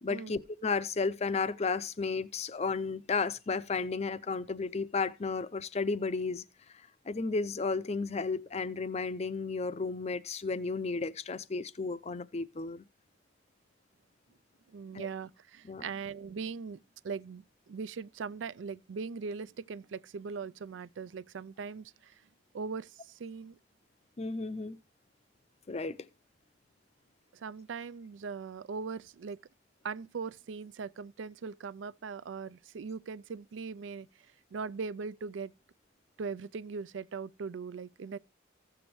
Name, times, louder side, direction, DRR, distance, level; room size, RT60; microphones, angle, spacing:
voice 1, 0.0-6.4 7.1-12.9 14.9-15.1 15.6-15.8 24.2-24.8 25.7-26.0, left 4 dB, 35° left, 0.5 m, -33 dB
voice 2, 14.7-22.1 22.5-22.9 23.2-23.5 27.3-29.4 29.8-34.1 34.5-35.5 36.2-38.2, right 5 dB, 85° right, 0.4 m, -40 dB
15.5 x 6.9 x 3.1 m
head